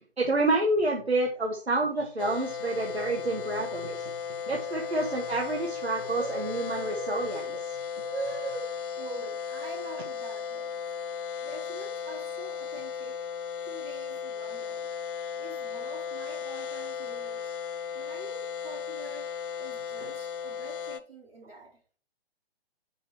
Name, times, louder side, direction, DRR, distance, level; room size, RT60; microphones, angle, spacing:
voice 1, 0.2-4.1 4.5-8.7, right 2 dB, 85° right, 1 dB, 1.3 m, -29 dB
sound 1, 2.2-21.0, left 7 dB, 55° left, 0.6 m, -36 dB
voice 2, 9.0-10.7 11.4-13.2 13.6-14.9 15.3-17.5 17.9-19.3 19.6-21.8, right 2 dB, 65° right, 0 dB, 3.5 m, -46 dB
6.1 x 5.3 x 4.5 m, 0.43 s
figure-of-eight pair, 130°, 31 cm